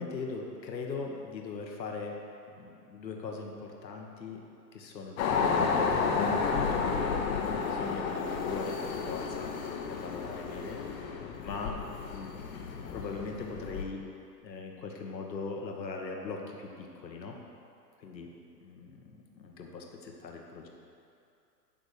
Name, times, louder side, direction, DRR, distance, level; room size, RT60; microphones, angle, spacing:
voice 1, 0.0-2.2 2.5-4.4 4.7-9.5 9.9-11.7 12.1-14.1 14.4-17.4 18.0-18.3 18.6-20.7, left 4 dB, 85° left, 1 dB, 1.4 m, -40 dB
sound 1, 5.2-13.8, left 5 dB, 55° left, 1.2 m, -31 dB
10.5 x 4.0 x 6.6 m, 2.5 s
hypercardioid pair, 115°, 50 cm